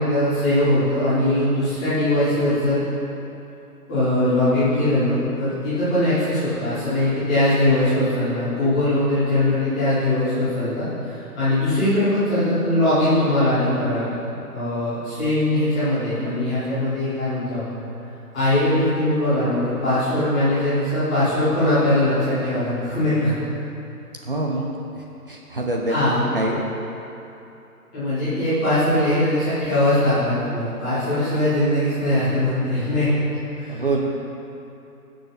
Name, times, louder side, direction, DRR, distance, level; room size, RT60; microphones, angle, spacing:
voice 1, 0.0-2.8 3.9-17.8 18.3-23.3 25.9-26.2 27.9-33.1 33.5-33.8, left 1 dB, 5° left, -17 dB, 1.3 m, -21 dB
voice 2, 24.3-24.7 25.3-26.0 26.3-26.6 33.7-34.0, right 2 dB, 35° right, -1 dB, 0.9 m, -24 dB
15.5 x 6.9 x 4.0 m, 2.8 s
hypercardioid pair, 175°, 46 cm